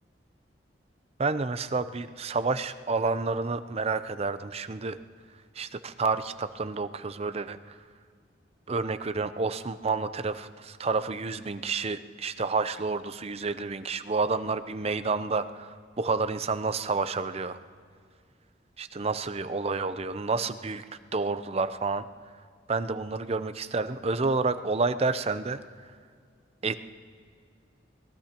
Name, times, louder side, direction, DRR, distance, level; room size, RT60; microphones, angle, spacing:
voice 1, 1.2-5.0 5.6-7.7 8.7-17.6 18.8-20.8 21.1-22.0 22.7-25.6 26.6-26.7, right 4 dB, 35° right, 12 dB, 0.6 m, -29 dB
25.0 x 19.0 x 3.0 m, 2.1 s
head